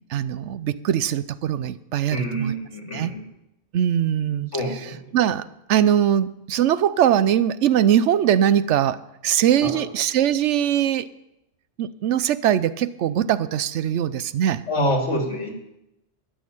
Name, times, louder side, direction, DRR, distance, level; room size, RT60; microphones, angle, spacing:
voice 1, 0.1-2.5 2.9-3.1 3.7-4.5 5.1-11.1 11.8-14.6, right 10 dB, 85° right, 15 dB, 1.0 m, -21 dB
voice 2, 2.1-3.2 4.5-5.0 9.6-9.8 14.7-15.5, equal, 85° left, 1 dB, 2.9 m, -26 dB
13.0 x 6.4 x 9.8 m, 0.87 s
omnidirectional pair, 1.2 m